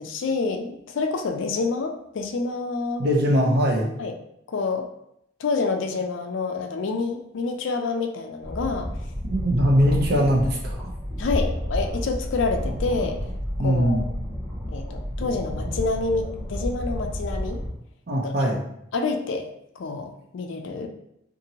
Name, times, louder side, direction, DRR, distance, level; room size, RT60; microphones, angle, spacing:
voice 1, 0.0-3.0 4.0-4.1 4.5-4.9 5.4-8.9 11.2-13.2 13.6-14.1 14.7-17.6 18.2-18.5 18.9-19.5 19.8-20.9, left 4 dB, 65° left, 4 dB, 0.4 m, -28 dB
voice 2, 3.0-3.9 9.3-10.8 13.6-14.0 18.1-18.6, equal, 50° right, -1 dB, 0.6 m, -21 dB
sound 1, 8.4-17.7, equal, 5° left, 1.2 m, -30 dB
2.7 x 2.5 x 2.8 m, 0.76 s
head